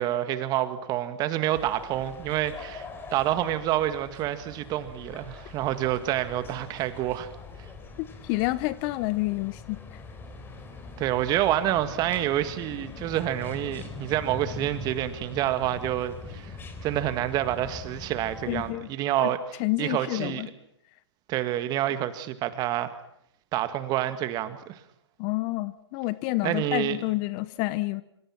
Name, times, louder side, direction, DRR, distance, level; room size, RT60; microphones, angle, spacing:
voice 1, 0.0-7.3 11.0-16.6 16.8-19.4 19.8-20.4 21.3-22.9 23.5-24.8 26.4-27.0, right 13 dB, 25° right, 10 dB, 2.0 m, -28 dB
sound 1, 1.5-18.7, left 4 dB, 15° left, 3.6 m, -42 dB
voice 2, 8.2-10.0 18.5-18.9 19.2-19.3 19.6-20.5 25.2-28.0, left 20 dB, 35° left, 16 dB, 1.0 m, -29 dB
26.0 x 25.5 x 6.0 m, 0.74 s
hypercardioid pair, 130°, 15 cm